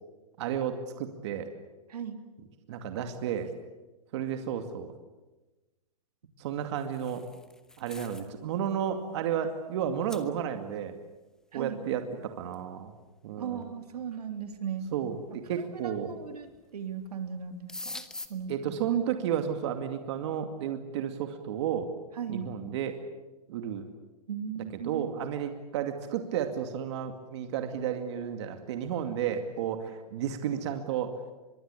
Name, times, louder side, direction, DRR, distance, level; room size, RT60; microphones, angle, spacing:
voice 1, 0.4-1.5 2.7-3.5 4.1-4.9 6.4-7.3 7.8-10.9 11.5-12.9 13.2-13.7 14.9-16.1 18.5-21.9 22.3-23.0 23.5-23.9 24.8-31.1, right 9 dB, 45° right, 6 dB, 2.4 m, -32 dB
voice 2, 1.9-2.2 11.5-11.8 13.4-14.9 15.3-18.0 18.3-18.6 22.1-22.5 24.3-25.1, right 7 dB, 85° right, 6 dB, 3.2 m, -37 dB
sound 1, 6.6-8.3 8.7-8.9 9.6-9.7 10.1-10.3 12.5-12.6 13.6-13.7 14.4-14.9 16.1-16.6 16.9-17.1 17.3-18.3, left 2 dB, 5° left, 1.0 m, -44 dB
24.5 x 23.0 x 8.4 m, 1.1 s
hypercardioid pair, 160°, 19 cm